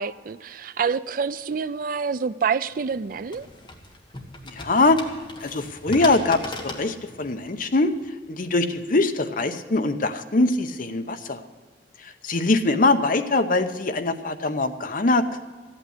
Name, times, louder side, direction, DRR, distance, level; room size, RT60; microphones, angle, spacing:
voice 1, 0.0-3.5, right 6 dB, 50° right, 15 dB, 0.4 m, -27 dB
sound 1, 2.7-8.1, left 2 dB, 25° left, 1.5 m, -39 dB
voice 2, 4.5-5.0 5.4-7.9 8.3-11.4 12.0-15.4, left 2 dB, 50° left, 8 dB, 0.8 m, -22 dB
15.0 x 8.9 x 7.9 m, 1.4 s
head